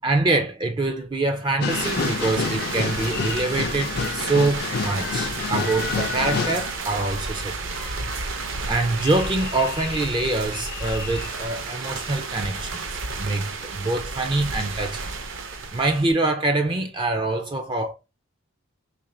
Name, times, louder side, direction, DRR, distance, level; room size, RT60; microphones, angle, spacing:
voice 1, 0.0-7.6 8.7-12.8 13.2-15.0 15.7-17.9, right 2 dB, 20° right, 0.4 m, -25 dB
sound 1, 1.6-6.8 7.2-12.3 12.5-12.6, left 5 dB, 45° left, 0.4 m, -30 dB
sound 2, 1.7-16.1, right 4 dB, 60° right, 0.6 m, -32 dB
3.2 x 2.5 x 4.2 m
head